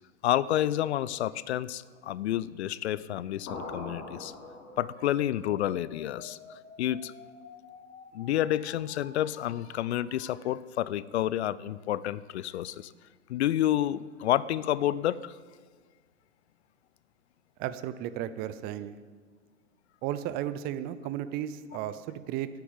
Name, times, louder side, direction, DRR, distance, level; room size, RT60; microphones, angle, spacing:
voice 1, 0.2-4.3 4.8-7.1 8.1-12.9 13.3-15.4, left 12 dB, 55° left, 19 dB, 0.5 m, -29 dB
sound 1, 3.5-5.2, left 2 dB, 35° left, 3.4 m, -41 dB
sound 2, 3.6-10.6, left 5 dB, 75° left, 1.7 m, -51 dB
voice 2, 17.6-19.0 20.0-22.5, right 11 dB, 25° right, 13 dB, 0.5 m, -34 dB
9.5 x 8.4 x 8.9 m, 1.5 s
figure-of-eight pair, 105°, 40 cm